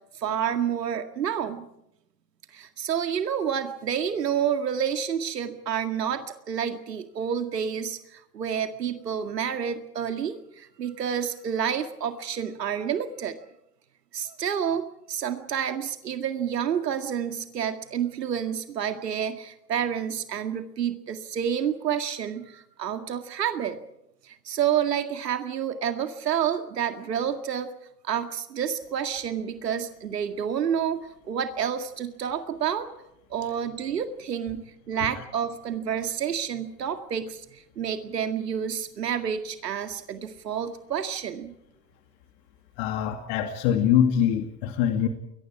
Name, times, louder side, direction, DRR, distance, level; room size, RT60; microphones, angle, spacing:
voice 1, 0.1-1.7 2.5-13.4 14.1-23.8 24.2-27.7 28.0-31.0 31.3-32.9 33.3-41.5, right 8 dB, 85° right, 7 dB, 2.1 m, -29 dB
voice 2, 42.8-45.1, left 9 dB, 50° left, 6 dB, 2.5 m, -24 dB
29.5 x 22.5 x 4.8 m, 0.80 s
hypercardioid pair, 105°, 47 cm